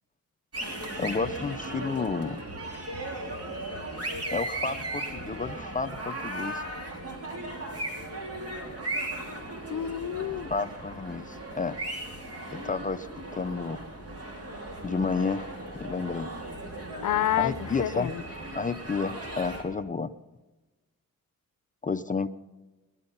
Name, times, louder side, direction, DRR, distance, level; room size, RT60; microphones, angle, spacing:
sound 1, 0.5-19.6, right 1 dB, 50° right, 3.6 m, -37 dB
voice 1, 1.0-2.4 4.3-6.6 10.5-11.8 12.5-13.8 14.8-15.5 15.7-16.3 17.4-18.1 18.5-20.1 21.8-22.3, left 4 dB, 25° left, 9 dB, 0.5 m, -31 dB
voice 2, 9.7-10.5 17.0-18.2, left 11 dB, 75° left, 15 dB, 0.7 m, -29 dB
20.0 x 11.5 x 5.6 m, 1.2 s
cardioid pair, 105°, 31 cm